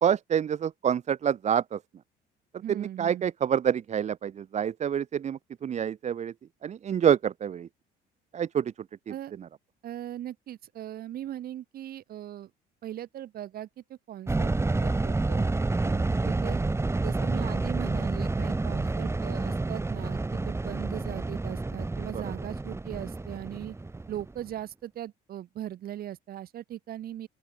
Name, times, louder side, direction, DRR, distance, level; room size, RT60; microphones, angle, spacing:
voice 1, 0.0-1.8 2.7-6.3 6.6-7.7 8.3-8.7 15.9-16.1, right 8 dB, 40° right, 1.0 m, -27 dB
voice 2, 2.6-3.3 9.1-9.3 9.8-12.5 12.8-14.5 14.8-15.5 16.2-16.6 17.0-23.7 24.1-27.3, right 12 dB, 60° right, 6.6 m, -39 dB
sound 1, 14.3-24.5, right 3 dB, 15° right, 5.6 m, -29 dB
open air
cardioid pair, 110°, 17 cm